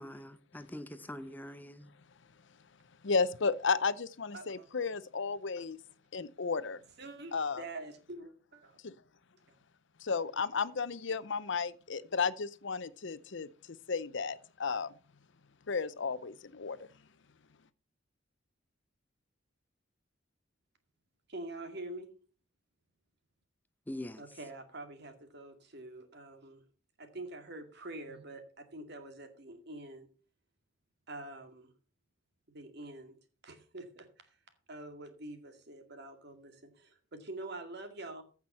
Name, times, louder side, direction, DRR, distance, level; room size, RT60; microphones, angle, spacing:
voice 1, 0.0-1.9 23.9-24.2, left 1 dB, 10° left, 0.7 m, -43 dB
voice 2, 3.0-5.8 6.1-6.8 7.3-7.6 8.8-8.9 10.0-13.5 13.9-14.9 15.7-16.8, left 5 dB, 65° left, 0.7 m, -33 dB
voice 3, 4.3-4.7 7.0-8.7 21.3-22.1 24.2-26.6 27.0-30.1 31.1-31.7 32.5-34.4 34.7-38.2, right 2 dB, 60° right, 2.2 m, -46 dB
15.0 x 6.0 x 5.6 m
head